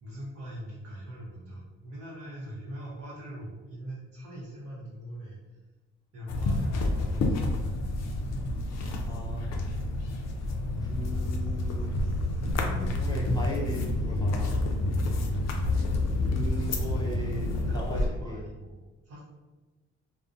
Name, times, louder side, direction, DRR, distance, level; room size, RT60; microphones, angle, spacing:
voice 1, 0.0-5.6 6.1-7.6 8.6-8.7 14.9-15.1 17.6-19.2, right 1 dB, 55° right, -7 dB, 0.7 m, -42 dB
sound 1, 6.3-18.1, left 2 dB, 60° left, 0.4 m, -29 dB
voice 2, 9.1-9.5 10.8-12.0 12.8-14.5 16.3-18.4, equal, 15° left, -5 dB, 0.5 m, -38 dB
2.5 x 2.1 x 2.4 m, 1.2 s
cardioid pair, 90°, 30 cm